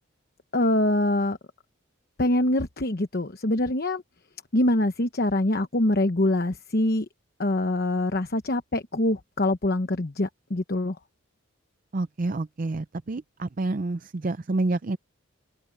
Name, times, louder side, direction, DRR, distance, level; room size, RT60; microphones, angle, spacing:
voice 1, 0.5-1.4 2.2-4.0 4.5-7.1 7.4-11.0, left 1 dB, 50° left, 1.1 m, -24 dB
voice 2, 11.9-15.0, right 2 dB, 40° right, 0.5 m, -28 dB
head